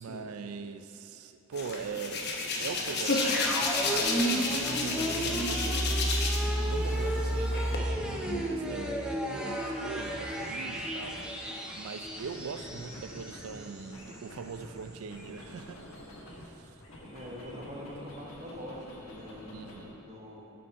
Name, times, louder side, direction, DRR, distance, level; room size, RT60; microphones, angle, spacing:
voice 1, 0.0-2.3 2.6-6.1 6.6-15.8 16.3-16.8 19.5-19.9, right 5 dB, 85° right, 10 dB, 0.4 m, -42 dB
Hands, 1.5-6.5 6.9-7.8, left 3 dB, 50° left, 0.9 m, -31 dB
sound 1, 1.8-9.0 10.0-11.7 12.0-16.4 16.8-19.9, equal, 75° left, 1.4 m, -48 dB
sound 2, 3.0-13.8 14.1-14.2, right 1 dB, 5° right, 0.6 m, -32 dB
voice 2, 17.1-20.5, equal, 35° right, -2 dB, 1.1 m, -44 dB
8.7 x 5.3 x 4.6 m, 2.9 s
head